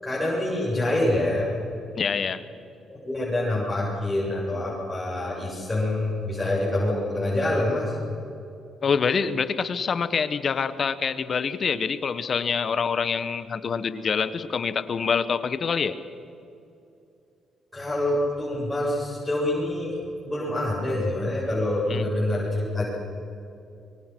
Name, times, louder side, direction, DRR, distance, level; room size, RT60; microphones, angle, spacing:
voice 1, 0.0-1.6 2.9-7.9 17.7-19.9 20.2-22.9, left 1 dB, 10° left, -8 dB, 7.6 m, -26 dB
voice 2, 2.0-2.5 8.8-16.0 21.9-22.1, left 6 dB, 50° left, 13 dB, 1.3 m, -26 dB
25.0 x 24.0 x 6.1 m, 2.7 s
cardioid pair, 90°, 0 cm